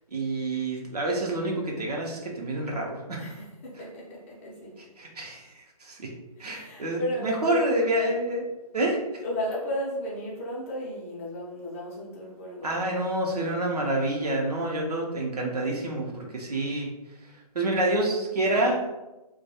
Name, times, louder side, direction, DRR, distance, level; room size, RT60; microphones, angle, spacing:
voice 1, 0.1-3.3 5.0-6.1 6.4-8.5 8.7-9.2 12.6-16.9 17.2-18.9, right 1 dB, 75° right, -1 dB, 0.7 m, -28 dB
voice 2, 3.2-4.8 6.4-7.7 9.2-13.0, equal, 20° left, -4 dB, 0.5 m, -34 dB
2.2 x 2.2 x 2.8 m, 1.0 s
figure-of-eight pair, 145°, 20 cm